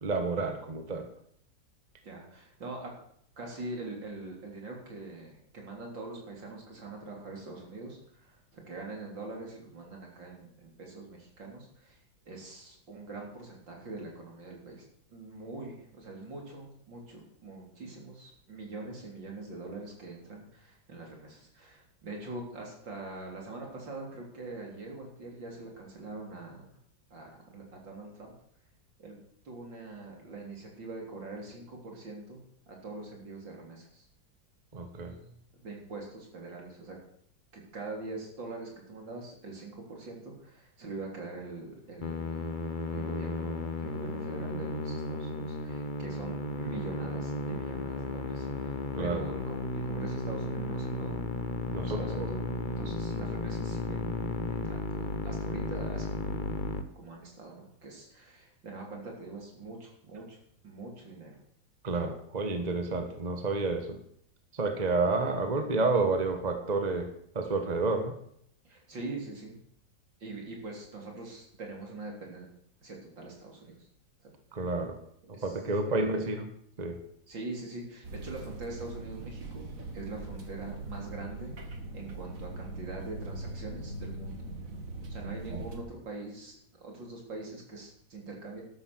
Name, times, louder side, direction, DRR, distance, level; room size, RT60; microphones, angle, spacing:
voice 1, 0.0-1.1 34.7-35.1 48.9-49.2 51.7-52.3 61.8-64.0 64.5-67.1 67.3-68.1 74.5-75.0 75.4-76.5 76.8-77.0 85.5-85.6, right 3 dB, 25° right, 6 dB, 1.5 m, -30 dB
voice 2, 2.0-2.9 3.4-12.0 12.3-26.7 27.1-28.3 29.0-29.2 29.4-32.4 32.7-34.1 35.5-37.0 37.5-42.5 42.9-51.3 51.8-54.1 54.5-56.6 57.0-60.4 60.6-61.4 68.6-69.6 70.2-72.5 72.8-73.9 74.2-74.3 75.3-75.6 76.1-76.2 77.3-84.5 85.1-88.6, right 3 dB, 75° right, 0 dB, 4.5 m, -43 dB
Musical instrument, 42.0-56.8, left 3 dB, 35° left, 1.0 m, -34 dB
sound 1, 78.0-85.8, right 2 dB, 45° right, 2.1 m, -41 dB
13.0 x 12.5 x 6.3 m, 0.67 s
omnidirectional pair, 2.0 m